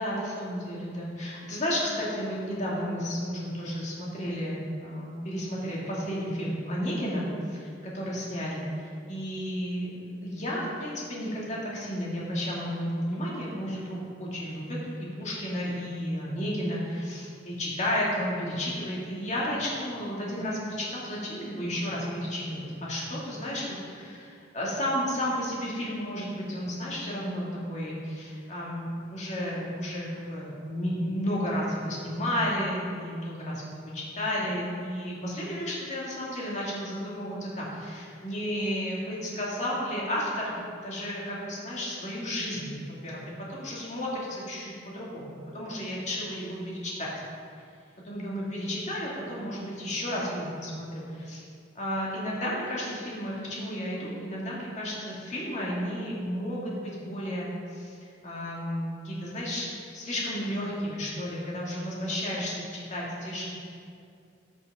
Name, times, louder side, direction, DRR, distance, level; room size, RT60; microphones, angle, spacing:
voice 1, 0.0-43.2 43.5-47.1 48.0-51.4 51.7-58.0 58.2-59.7 59.9-63.5, equal, 35° left, -5 dB, 2.2 m, -32 dB
14.0 x 6.6 x 3.6 m, 2.4 s
head